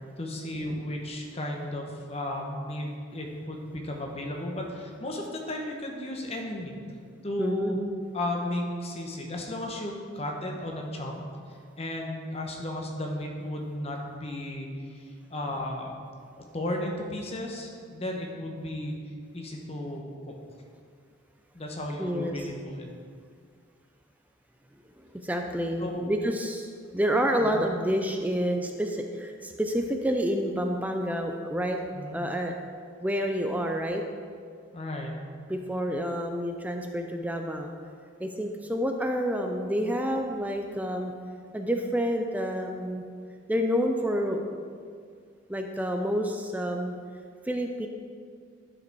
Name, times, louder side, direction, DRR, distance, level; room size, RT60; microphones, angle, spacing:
voice 1, 0.2-6.7 7.2-7.8 8.1-11.2 11.8-15.9 16.5-18.9 19.3-20.3 21.5-22.9 25.8-26.1 27.4-27.6 31.9-32.2 34.7-35.1, left 1 dB, 30° left, 0 dB, 1.0 m, -34 dB
voice 2, 7.4-7.8 22.0-22.5 25.2-31.8 32.1-32.5 33.0-34.0 35.5-37.7 38.2-41.1 41.5-43.0 43.5-44.4 45.5-46.9 47.5-47.9, equal, 10° right, 3 dB, 0.4 m, -28 dB
11.5 x 4.9 x 4.6 m, 2.2 s
head